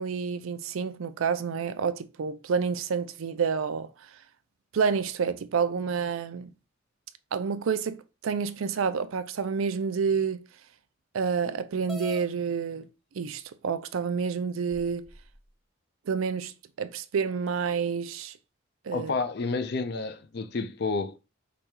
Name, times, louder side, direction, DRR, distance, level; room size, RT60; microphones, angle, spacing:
voice 1, 0.0-3.9 4.7-6.5 7.3-8.0 8.2-10.4 11.1-12.9 13.2-15.1 16.1-16.5 16.8-18.3 18.9-19.1, right 6 dB, 90° right, 0.4 m, -29 dB
sound 1, 11.9-12.3 13.2-13.3 14.0-14.1 14.7-15.4, left 2 dB, ahead, 0.5 m, -41 dB
voice 2, 18.9-21.2, left 4 dB, 55° left, 0.4 m, -30 dB
4.9 x 2.3 x 4.4 m
head